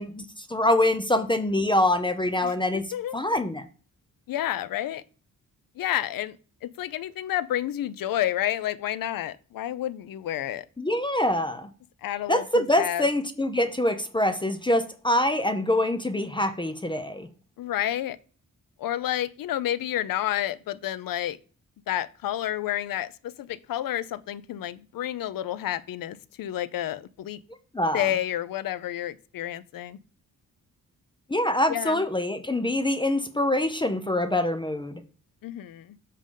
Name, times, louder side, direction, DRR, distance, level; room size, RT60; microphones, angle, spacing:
voice 1, 0.0-2.8 3.1-3.7 10.8-11.7 12.3-17.3 27.7-28.1 31.3-35.0, left 1 dB, 15° left, 0.5 m, -25 dB
voice 2, 2.4-3.1 4.3-5.0 5.8-6.4 6.6-10.6 12.0-13.1 17.6-18.2 18.8-21.4 21.9-27.4 27.9-30.0 31.7-32.0 35.4-36.0, left 12 dB, 80° left, 0.5 m, -30 dB
7.5 x 4.9 x 3.7 m
wide cardioid pair, 125°, 33 cm